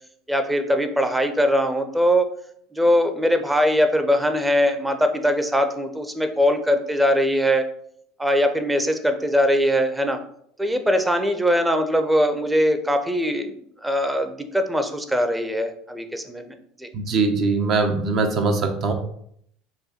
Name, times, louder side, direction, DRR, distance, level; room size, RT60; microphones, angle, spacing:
voice 1, 0.3-2.3 2.7-7.7 8.2-10.2 10.6-13.6 13.8-16.9, equal, 10° right, 7 dB, 0.7 m, -21 dB
voice 2, 16.9-18.9, right 3 dB, 50° right, 5 dB, 0.8 m, -21 dB
5.2 x 2.2 x 4.3 m, 0.69 s
hypercardioid pair, 80°, 0 cm